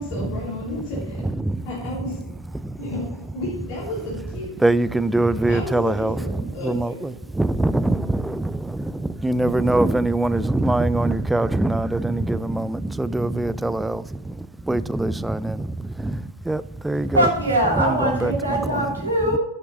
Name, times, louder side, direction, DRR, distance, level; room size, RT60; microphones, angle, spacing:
voice 1, 0.0-1.2 1.6-2.2 2.8-4.6 5.3-7.1, left 1 dB, 50° left, 3.1 m, -32 dB
voice 2, 1.2-1.6 2.5-2.8 4.6-17.2, right 2 dB, 5° right, 0.3 m, -23 dB
voice 3, 16.9-19.4, right 1 dB, 75° right, 2.6 m, -22 dB
9.4 x 6.7 x 3.9 m
figure-of-eight pair, 90°, 0 cm